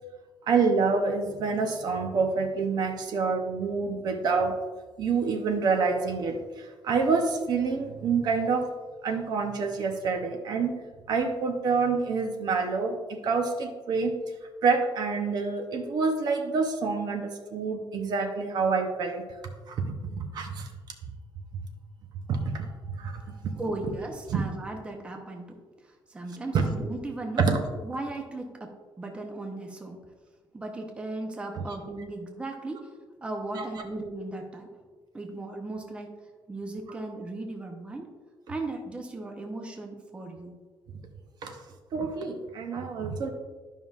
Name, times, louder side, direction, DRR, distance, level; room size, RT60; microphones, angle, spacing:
voice 1, 0.5-4.5 5.0-8.7 9.0-10.8 11.1-14.2 14.6-19.2 19.7-20.7 22.3-23.5 24.3-24.4 26.5-26.6 27.4-27.6 31.5-31.6 33.6-33.8 41.4-41.6 41.9-43.3, right 4 dB, 50° right, 5 dB, 0.7 m, -27 dB
voice 2, 23.6-25.6 26.1-27.4 27.8-28.7 29.0-30.0 30.5-32.8 33.2-34.7 35.1-36.1 36.5-38.1 38.5-40.5, right 2 dB, 10° right, 2 dB, 0.6 m, -36 dB
11.5 x 5.4 x 2.4 m, 1.4 s
cardioid pair, 175°, 9 cm